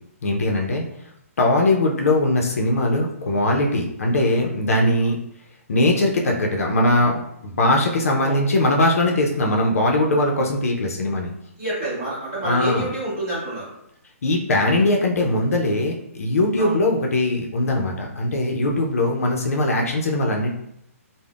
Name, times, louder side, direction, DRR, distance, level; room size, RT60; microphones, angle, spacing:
voice 1, 0.2-0.8 1.4-5.2 5.7-11.3 12.4-12.9 14.2-20.5, left 1 dB, 70° left, 0 dB, 0.5 m, -20 dB
voice 2, 11.6-13.7 16.6-16.7, right 1 dB, 10° right, -11 dB, 0.9 m, -28 dB
3.4 x 2.0 x 2.3 m, 0.76 s
hypercardioid pair, 180°, 8 cm